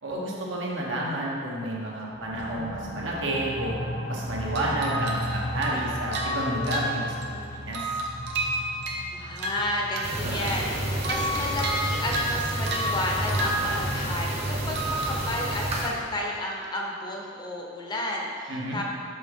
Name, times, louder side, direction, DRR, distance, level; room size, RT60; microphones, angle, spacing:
voice 1, 0.0-3.8 4.1-7.9 18.5-18.8, right 1 dB, 75° right, -4 dB, 1.2 m, -30 dB
sound 1, 2.1-13.4, equal, 90° left, 0.9 m, -37 dB
sound 2, 4.6-7.4 7.7-10.2 10.5-14.3 14.8-15.3, right 1 dB, 60° right, 0.7 m, -31 dB
voice 2, 9.1-18.8, left 1 dB, 20° left, -1 dB, 0.7 m, -32 dB
sound 3, 10.0-15.9, right 1 dB, 35° right, 1.0 m, -30 dB
6.1 x 5.2 x 3.6 m, 2.2 s
head